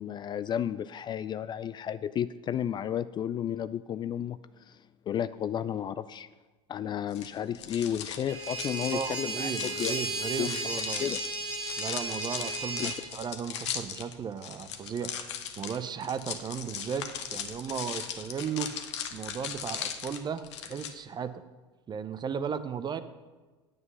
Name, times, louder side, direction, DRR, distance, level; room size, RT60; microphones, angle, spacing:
voice 1, 0.0-4.8 5.1-6.3 6.7-9.9 10.4-10.5 11.0-11.2 12.8-12.9, left 9 dB, 30° left, 15 dB, 0.4 m, -32 dB
sound 1, 7.1-20.9, left 8 dB, 70° left, 1.0 m, -38 dB
sound 2, 8.3-13.0, right 2 dB, 75° right, 2.0 m, -34 dB
voice 2, 8.9-11.1 11.8-15.1 15.6-18.7 19.1-21.3 21.9-23.0, right 7 dB, 30° right, 12 dB, 0.7 m, -35 dB
9.4 x 8.0 x 5.5 m, 1.3 s
hypercardioid pair, 75°, 15 cm